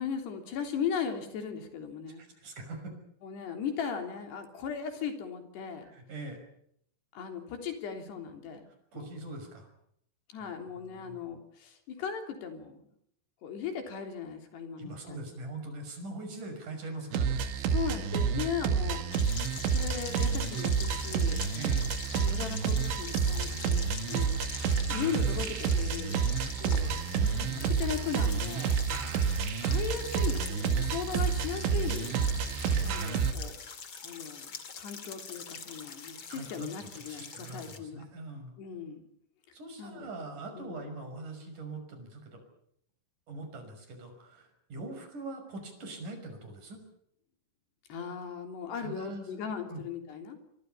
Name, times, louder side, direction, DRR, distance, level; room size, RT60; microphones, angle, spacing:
voice 1, 0.0-2.2 3.2-5.9 7.1-8.6 8.9-9.1 10.3-12.9 13.4-15.2 17.7-19.0 19.7-21.4 22.1-24.4 24.9-26.9 27.7-28.7 29.6-32.1 32.8-33.6 34.0-34.5 34.8-38.0 38.6-39.0 39.8-40.1 40.5-40.8 47.9-50.4, left 7 dB, 65° left, 5 dB, 5.4 m, -37 dB
voice 2, 2.2-3.0 5.8-6.4 8.9-9.7 10.4-11.3 14.8-17.5 21.5-21.9 26.7-27.8 28.9-29.2 32.7-32.9 36.3-38.6 39.5-42.4 43.3-46.8 48.8-49.8, right 2 dB, 45° right, 6 dB, 7.2 m, -43 dB
sound 1, 17.1-33.3, right 6 dB, 80° right, 4.3 m, -29 dB
sound 2, 19.1-37.8, left 5 dB, 40° left, 2.0 m, -43 dB
27.5 x 25.0 x 5.7 m, 0.70 s
omnidirectional pair, 5.3 m